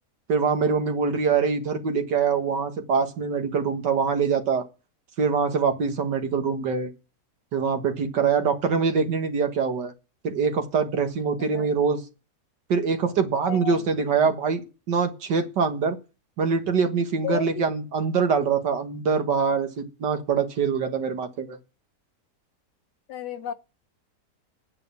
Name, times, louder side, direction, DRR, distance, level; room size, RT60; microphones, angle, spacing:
voice 1, 0.3-4.7 5.2-6.9 7.5-9.9 10.2-12.0 12.7-14.6 14.9-16.0 16.4-21.6, right 5 dB, 90° right, 2.1 m, -24 dB
voice 2, 13.5-13.8 17.2-17.6 23.1-23.5, left 9 dB, 85° left, 1.5 m, -32 dB
9.6 x 7.7 x 7.0 m
omnidirectional pair, 1.8 m